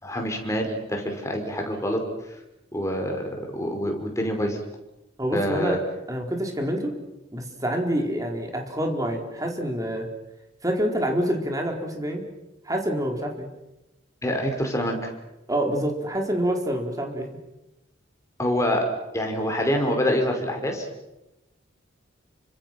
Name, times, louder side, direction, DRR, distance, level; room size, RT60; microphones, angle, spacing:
voice 1, 0.0-2.0 2.7-4.6 5.3-5.8 14.2-15.1 18.4-18.9 19.1-20.9, equal, 15° left, 2 dB, 5.3 m, -26 dB
voice 2, 5.2-5.8 6.1-7.0 7.3-10.0 10.6-12.2 12.6-13.5 15.5-17.3, equal, 20° right, 2 dB, 4.3 m, -27 dB
30.0 x 25.5 x 6.1 m, 0.93 s
head